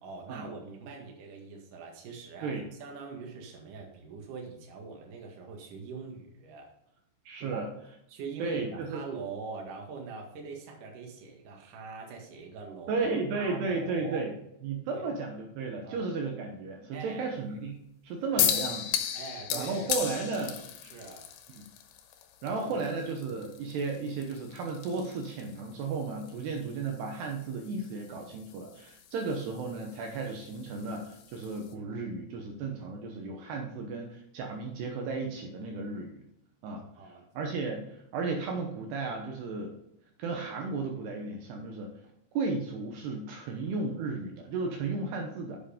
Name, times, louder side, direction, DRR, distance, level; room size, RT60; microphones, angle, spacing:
voice 1, 0.0-6.7 7.4-7.6 8.1-13.1 13.3-14.3 14.9-15.1 15.8-16.1 16.9-17.3 18.3-18.6 19.1-20.4 20.8-21.3 22.6-22.8 23.2-23.4 36.7-37.2, right 4 dB, 55° right, 0 dB, 2.7 m, -43 dB
voice 2, 7.3-7.7 8.4-9.0 12.9-14.3 14.6-18.8 19.5-20.6 22.4-36.2 36.6-36.8 37.3-39.7 40.2-41.9 42.3-45.6, right 4 dB, 70° right, 2 dB, 2.7 m, -34 dB
sound 1, 18.4-31.7, left 10 dB, 80° left, 3.3 m, -37 dB
7.9 x 7.4 x 5.1 m, 0.77 s
omnidirectional pair, 5.6 m